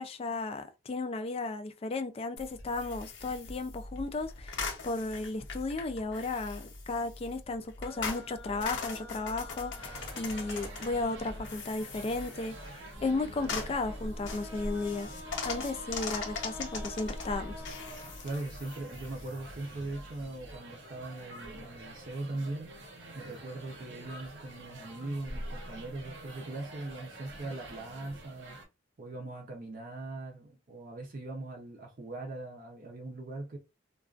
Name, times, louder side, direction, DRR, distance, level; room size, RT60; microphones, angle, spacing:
voice 1, 0.0-15.1 15.4-17.6, left 3 dB, 30° left, 0.3 m, -34 dB
sound 1, 2.4-20.6, left 4 dB, 85° left, 0.6 m, -41 dB
sound 2, 7.8-11.8 12.9-18.7, left 2 dB, 5° left, 0.9 m, -49 dB
sound 3, 9.8-28.6, right 1 dB, 85° right, 0.9 m, -48 dB
voice 2, 18.2-22.7 23.1-28.6 29.0-33.6, right 2 dB, 50° right, 0.5 m, -40 dB
2.3 x 2.3 x 2.4 m
head